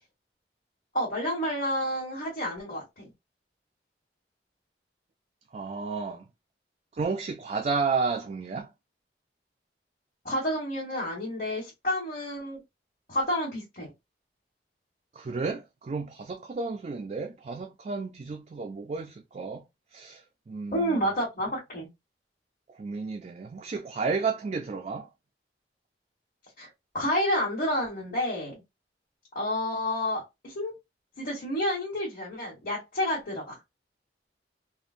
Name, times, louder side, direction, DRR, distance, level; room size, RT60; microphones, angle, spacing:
voice 1, 0.9-3.1 10.2-12.6 13.1-13.9 20.7-21.9 26.6-26.7 26.9-28.5 29.3-30.7 31.2-33.4, equal, 50° left, 1.3 m, -29 dB
voice 2, 5.5-6.3 6.9-8.7 15.1-19.6 19.9-21.0 22.8-25.1, right 4 dB, 40° right, 0.3 m, -32 dB
3.5 x 2.1 x 2.5 m
head